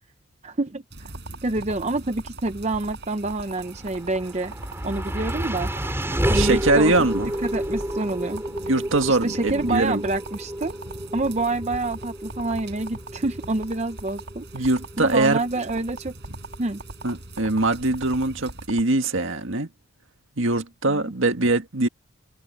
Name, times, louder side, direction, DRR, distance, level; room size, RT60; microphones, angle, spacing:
voice 1, 0.4-1.1 1.4-4.5 4.8-5.7 6.3-6.9 7.4-8.4 9.1-10.8 11.1-14.7 15.0-16.1 16.6-16.8 20.9-21.1, right 2 dB, 30° right, 0.7 m, -27 dB
sound 1, 0.9-18.7, right 1 dB, 50° right, 7.8 m, -43 dB
sound 2, 1.0-18.8, right 3 dB, 90° right, 2.3 m, -38 dB
sound 3, 3.7-16.0, equal, 10° right, 4.0 m, -30 dB
voice 2, 6.3-7.3 8.7-10.0 14.5-15.4 17.0-19.7 20.4-21.9, right 2 dB, 70° right, 1.9 m, -22 dB
head